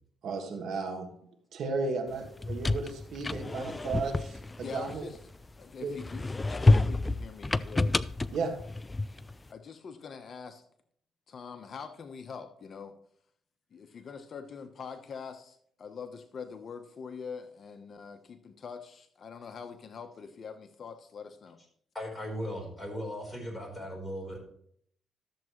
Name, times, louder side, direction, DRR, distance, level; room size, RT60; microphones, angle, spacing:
voice 1, 0.2-1.1 1.5-5.1 5.8-5.9 8.3-8.5, right 4 dB, 70° right, 4 dB, 1.6 m, -34 dB
sound 1, 2.2-5.5 6.0-9.4, left 2 dB, 20° left, 0.4 m, -28 dB
voice 2, 4.6-5.2 5.6-8.0 9.5-10.6 11.3-13.0 13.7-21.6, left 6 dB, 50° left, 7 dB, 0.9 m, -44 dB
voice 3, 21.9-24.4, equal, 5° left, -1 dB, 4.1 m, -37 dB
13.0 x 7.4 x 3.1 m, 0.65 s
cardioid pair, 90°, 0 cm